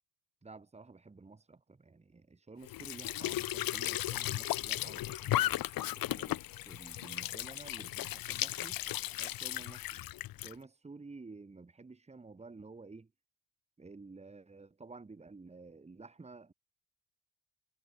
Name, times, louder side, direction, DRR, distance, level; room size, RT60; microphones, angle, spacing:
voice 1, 0.4-8.8 9.2-10.0 10.4-13.1 13.8-16.5, right 3 dB, 15° right, 4.1 m, -52 dB
Squeak / Sink (filling or washing) / Trickle dribble, 2.6-10.5, left 14 dB, 55° left, 1.2 m, -36 dB
cardioid pair, 140°, 40 cm